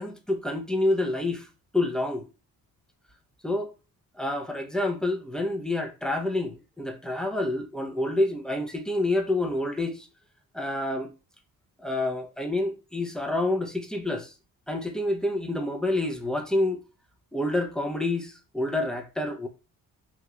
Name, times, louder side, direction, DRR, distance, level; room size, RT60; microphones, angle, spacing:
voice 1, 0.0-1.5 1.7-2.2 3.4-3.7 4.1-10.1 10.5-11.1 11.8-14.3 14.7-16.8 17.3-19.5, left 2 dB, ahead, 0.6 m, -28 dB
3.1 x 2.7 x 2.4 m
supercardioid pair, 50°, 44 cm